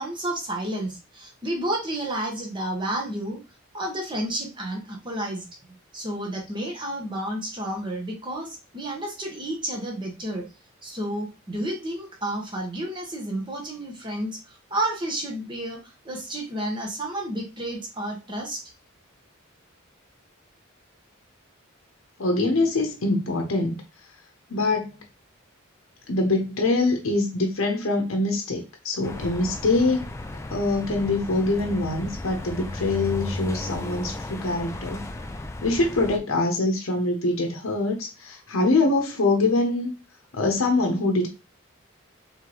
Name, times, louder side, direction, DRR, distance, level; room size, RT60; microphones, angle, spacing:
voice 1, 0.0-3.4 3.7-5.4 5.9-10.5 10.8-18.6, right 1 dB, 20° right, 0 dB, 1.1 m, -31 dB
voice 2, 22.2-23.8 24.5-25.0 26.1-30.1 30.5-35.0 35.6-39.9 40.3-41.3, left 2 dB, 80° left, 3 dB, 0.8 m, -24 dB
sound 1, 29.0-36.2, left 1 dB, 15° left, 0.3 m, -35 dB
4.7 x 3.3 x 3.0 m, 0.29 s
head